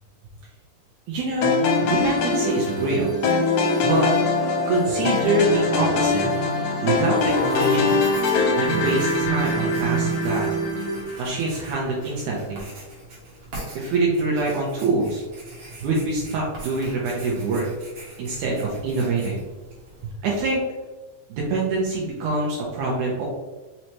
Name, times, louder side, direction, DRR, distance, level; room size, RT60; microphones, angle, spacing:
voice 1, 1.1-1.6 1.8-3.2 3.8-4.1 4.7-6.3 6.8-8.0 8.6-10.5 11.2-12.7 13.8-15.2 15.8-17.7 18.2-19.4 20.2-20.6 21.3-23.3, right 3 dB, 75° right, -3 dB, 2.2 m, -25 dB
sound 1, 1.4-11.7, left 5 dB, 80° left, 2.1 m, -24 dB
sound 2, 1.4-11.0, right 3 dB, 35° right, 0.9 m, -28 dB
Writing, 7.3-20.1, right 1 dB, 55° right, 1.8 m, -43 dB
5.4 x 3.2 x 2.9 m, 1.2 s
omnidirectional pair, 3.6 m